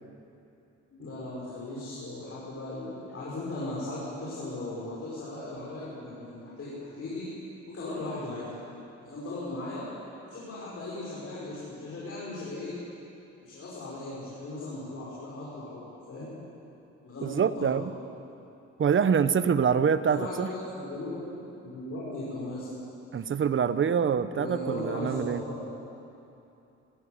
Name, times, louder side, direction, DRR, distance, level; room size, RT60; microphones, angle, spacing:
voice 1, 0.9-7.3 7.7-8.5 9.0-9.9 10.3-12.8 13.4-16.3 17.0-17.3 17.6-17.8 20.1-22.7 24.3-25.7, left 2 dB, 50° left, -8 dB, 6.2 m, -37 dB
voice 2, 17.2-17.9 18.8-20.5 23.1-25.4, right 7 dB, 40° right, 13 dB, 0.9 m, -25 dB
19.0 x 14.0 x 9.7 m, 2.8 s
cardioid pair, 90°, 30 cm